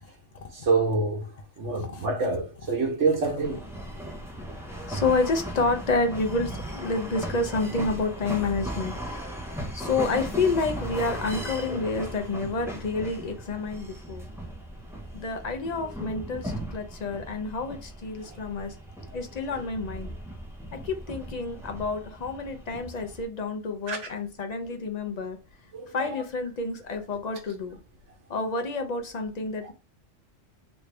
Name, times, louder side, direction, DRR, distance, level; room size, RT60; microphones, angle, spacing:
voice 1, 0.7-1.2 1.6-3.6 23.9-24.0 25.7-25.9, right 3 dB, 75° right, 1.4 m, -25 dB
voice 2, 1.7-2.3 2.6-2.8 3.2-3.4 4.9-9.2 9.7-14.3 15.1-18.7 19.1-20.1 20.7-25.4 25.9-27.7 28.3-29.7, left 3 dB, 50° left, 0.5 m, -29 dB
sound 1, 3.4-23.3, right 1 dB, 5° right, 0.4 m, -37 dB
3.2 x 2.6 x 3.2 m
omnidirectional pair, 1.3 m